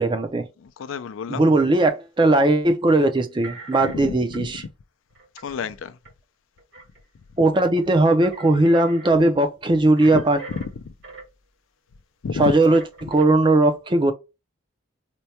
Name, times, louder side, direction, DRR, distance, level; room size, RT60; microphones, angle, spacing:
voice 1, 0.0-0.5 1.3-4.6 7.4-10.4 12.4-14.1, right 2 dB, 25° right, 0.4 m, -18 dB
voice 2, 0.6-1.5 3.8-4.5 5.4-6.0 10.1-10.2 10.5-10.9 12.2-12.5 13.0-13.1, left 5 dB, 75° left, 0.4 m, -30 dB
sound 1, 1.9-2.5 3.4-4.0 4.3-4.4 5.2-5.8 6.1-6.2 6.6-7.0 7.8-7.9 8.2-9.1 10.0-11.4 12.7-13.3, right 3 dB, 55° right, 1.3 m, -41 dB
4.4 x 2.2 x 2.8 m
head